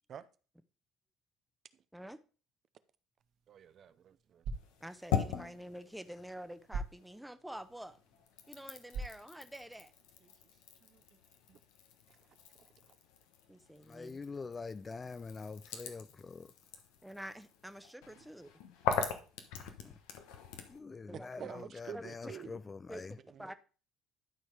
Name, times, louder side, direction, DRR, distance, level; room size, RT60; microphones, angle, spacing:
sound 1, 3.2-10.1, right 3 dB, 70° right, 1.9 m, -47 dB
voice 1, 3.5-4.4 10.2-10.3 10.8-11.0 11.5-11.6 12.1-12.2 12.6-12.9 18.2-18.3 21.1-22.6 23.3-23.5, right 8 dB, 50° right, 0.7 m, -49 dB
sound 2, 4.5-7.2 7.5-20.8, left 7 dB, 80° left, 1.2 m, -42 dB
voice 2, 4.8-8.0 8.5-9.9 13.5-14.2 17.0-18.5 21.2-21.5 21.9-22.3 22.9-23.5, equal, 5° right, 0.9 m, -48 dB
voice 3, 13.8-16.5 19.5-20.0 20.7-23.2, left 4 dB, 30° left, 0.4 m, -45 dB
11.5 x 4.6 x 4.8 m
hypercardioid pair, 70°, 0 cm